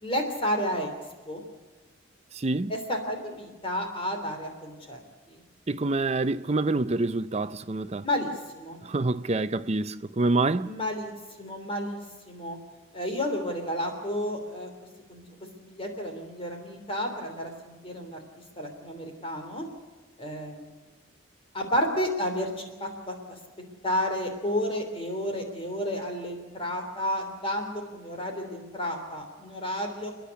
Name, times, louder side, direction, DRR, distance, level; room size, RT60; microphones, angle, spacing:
voice 1, 0.0-0.9 1.3-1.4 2.7-5.0 8.0-8.8 10.7-11.1 11.4-12.0 12.3-12.6 12.9-14.7 15.1-15.2 15.6-18.2 18.6-19.6 20.2-20.7 21.5-23.1 23.8-30.1, equal, 25° left, 3.3 m, -31 dB
voice 2, 2.3-2.7 5.7-8.1 8.8-10.7, right 2 dB, 30° right, 0.6 m, -26 dB
30.0 x 10.0 x 9.5 m
head